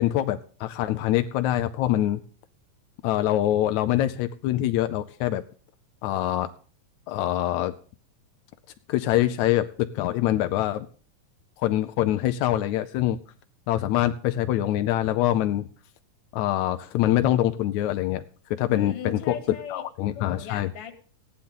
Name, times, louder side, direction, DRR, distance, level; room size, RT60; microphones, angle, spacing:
voice 1, 0.0-2.2 3.0-5.4 6.0-6.5 7.1-7.7 8.9-10.9 11.6-13.2 13.7-15.7 16.3-18.2 18.6-19.3 19.7-20.7, left 13 dB, 85° left, 9 dB, 1.6 m, -24 dB
voice 2, 18.7-19.8 20.1-20.9, left 7 dB, 45° left, 6 dB, 2.4 m, -38 dB
16.0 x 10.5 x 3.8 m, 0.42 s
omnidirectional pair, 4.1 m